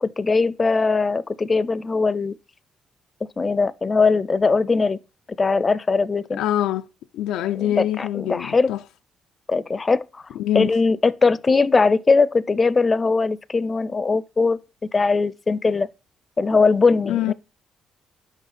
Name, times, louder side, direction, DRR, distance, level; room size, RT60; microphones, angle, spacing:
voice 1, 0.0-2.4 3.2-5.0 5.4-6.4 7.6-8.7 9.5-10.2 10.5-14.6 14.9-15.9 16.4-17.3, left 4 dB, 30° left, 0.4 m, -20 dB
voice 2, 6.4-6.9 7.1-8.8 10.4-10.7 17.0-17.3, left 12 dB, 90° left, 0.3 m, -24 dB
6.3 x 5.4 x 5.8 m
cardioid pair, 90°, 0 cm